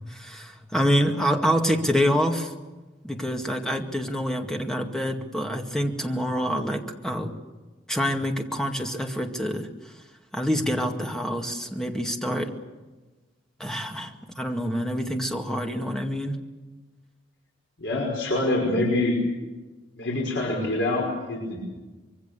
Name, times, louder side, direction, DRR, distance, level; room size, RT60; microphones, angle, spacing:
voice 1, 0.1-2.5 3.0-7.4 7.9-10.0 10.3-12.5 13.6-16.4, equal, 5° left, 3 dB, 2.1 m, -26 dB
voice 2, 17.8-19.2 19.9-21.6, left 2 dB, 70° left, -1 dB, 5.5 m, -25 dB
25.5 x 23.5 x 7.0 m, 1.2 s
head